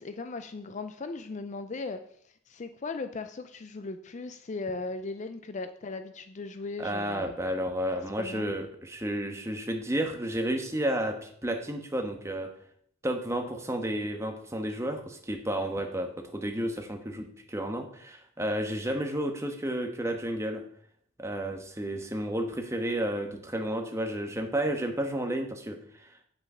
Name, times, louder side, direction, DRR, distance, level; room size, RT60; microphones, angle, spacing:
voice 1, 0.0-2.0 2.5-7.4 8.2-8.5, left 3 dB, 35° left, 9 dB, 0.4 m, -37 dB
voice 2, 6.8-12.5 13.0-20.6 21.2-26.1, right 1 dB, 15° right, 4 dB, 1.2 m, -32 dB
8.6 x 6.4 x 5.5 m, 0.65 s
head